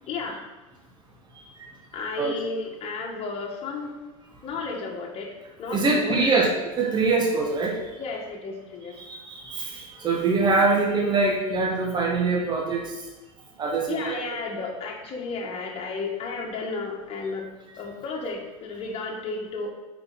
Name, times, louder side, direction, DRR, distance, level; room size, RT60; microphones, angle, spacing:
voice 1, 0.0-0.4 1.9-3.9 4.4-5.3 5.6-6.4 8.0-9.0 13.9-17.5 17.8-19.7, left 4 dB, 35° left, 0 dB, 1.7 m, -33 dB
voice 2, 5.7-6.5 6.8-7.8 9.0-12.9 13.6-14.2, right 3 dB, 25° right, -1 dB, 1.6 m, -23 dB
8.7 x 4.7 x 4.1 m, 1.1 s
figure-of-eight pair, 75°, 18 cm